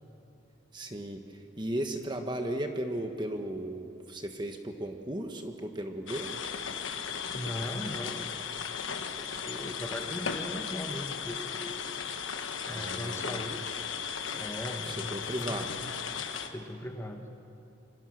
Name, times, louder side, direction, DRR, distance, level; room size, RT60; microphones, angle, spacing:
voice 1, 0.7-6.4 12.7-13.4 14.8-15.8, right 1 dB, 20° right, 4 dB, 1.3 m, -36 dB
sound 1, 6.1-16.5, left 6 dB, 75° left, 1.3 m, -36 dB
voice 2, 7.3-8.3 9.2-11.8 12.7-13.8 14.3-15.1 15.4-15.7 16.5-17.3, left 1 dB, 15° left, 4 dB, 1.4 m, -39 dB
26.5 x 24.5 x 6.5 m, 2.8 s
head